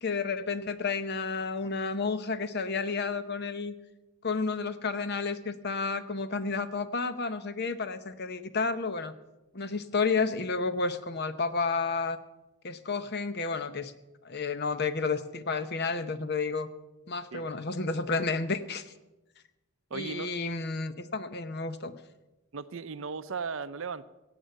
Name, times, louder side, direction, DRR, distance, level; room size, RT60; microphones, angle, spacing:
voice 1, 0.0-3.7 4.2-9.1 9.5-12.2 12.6-13.9 14.2-16.7 17.1-18.9 19.9-22.0, left 4 dB, 45° left, 12 dB, 0.8 m, -31 dB
voice 2, 19.9-20.3 22.5-24.0, right 5 dB, 60° right, 14 dB, 0.6 m, -36 dB
15.5 x 8.2 x 7.7 m, 1.0 s
head